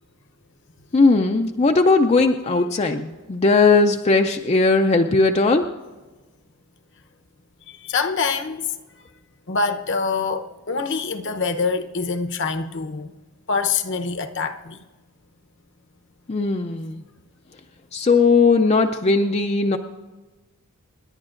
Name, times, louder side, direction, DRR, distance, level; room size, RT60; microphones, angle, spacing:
voice 1, 0.9-5.7 16.3-17.0 17.9-19.8, left 3 dB, 30° left, 0.5 m, -18 dB
voice 2, 7.7-8.7 9.5-13.1 13.5-14.8, left 4 dB, 55° left, 0.8 m, -25 dB
27.0 x 10.5 x 2.5 m
head